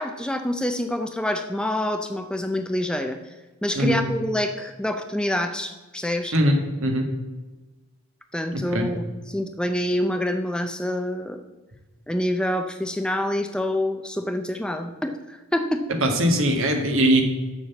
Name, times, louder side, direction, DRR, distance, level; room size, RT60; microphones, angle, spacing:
voice 1, 0.0-3.2 3.6-6.3 8.3-11.4 12.1-15.9, left 1 dB, 5° left, 6 dB, 0.5 m, -26 dB
voice 2, 6.3-7.0 8.7-8.9 16.0-17.2, right 1 dB, 65° right, 4 dB, 1.6 m, -20 dB
7.2 x 6.6 x 7.0 m, 1.2 s
head